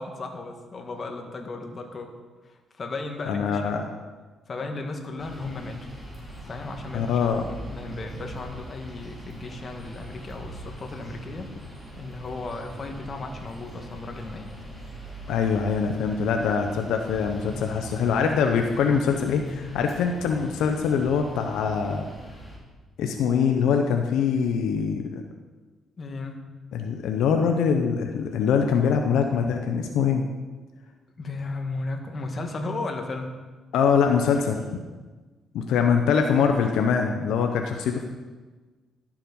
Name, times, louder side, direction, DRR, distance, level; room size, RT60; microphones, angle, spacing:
voice 1, 0.0-2.1 2.4-3.7 4.5-5.9 6.3-11.5 12.0-14.5 26.0-26.4 31.2-33.3, left 3 dB, 40° left, 3 dB, 1.7 m, -35 dB
voice 2, 3.3-3.8 6.9-7.4 15.3-22.1 23.0-25.2 26.7-30.2 33.7-34.6 35.5-38.0, left 6 dB, 85° left, 4 dB, 0.8 m, -23 dB
sound 1, 5.2-22.6, equal, ahead, 3.8 m, -41 dB
12.0 x 7.4 x 5.4 m, 1.3 s
cardioid pair, 90°, 0 cm